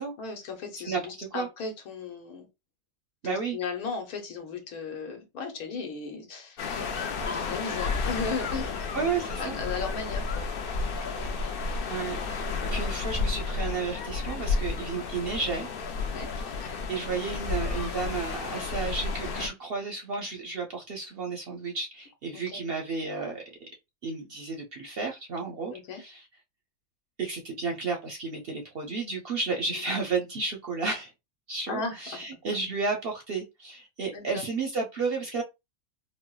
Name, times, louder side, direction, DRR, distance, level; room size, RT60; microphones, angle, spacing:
voice 1, 0.0-2.5 3.2-8.6 9.4-10.5 11.1-11.4 14.8-15.1 16.1-16.3 22.3-22.6 25.7-26.0 29.7-29.8 31.7-32.2 34.1-34.4, left 4 dB, 85° left, 1.4 m, -36 dB
voice 2, 0.8-1.5 3.2-3.6 8.9-9.6 11.9-12.2 12.7-15.7 16.9-23.7 24.0-26.2 27.2-31.1 31.5-35.4, right 4 dB, 55° right, 0.7 m, -32 dB
sound 1, 6.6-19.5, left 4 dB, 60° left, 0.6 m, -32 dB
4.2 x 2.1 x 2.3 m
omnidirectional pair, 1.5 m